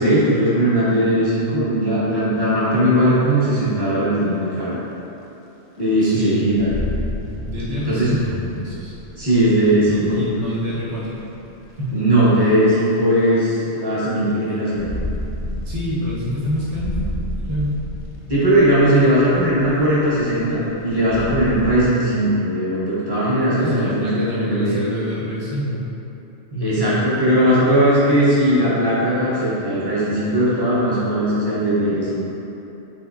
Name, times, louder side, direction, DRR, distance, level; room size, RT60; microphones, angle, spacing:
voice 1, 0.0-4.8 5.8-6.7 7.9-8.1 9.2-10.2 11.9-14.9 18.3-24.8 26.6-32.2, right 1 dB, 25° right, -10 dB, 0.7 m, -18 dB
sound 1, 4.2-4.3 5.1-5.2 5.8-5.9 6.6-11.7 12.6-12.7 14.5-21.9, left 1 dB, 55° left, 0.6 m, -31 dB
voice 2, 6.0-6.6 7.5-8.9 9.9-11.2 11.8-12.1 15.6-17.2 17.5-17.8 23.6-25.9 26.5-27.0, equal, 85° right, -8 dB, 1.2 m, -26 dB
3.6 x 3.1 x 2.4 m, 3.0 s
omnidirectional pair, 1.2 m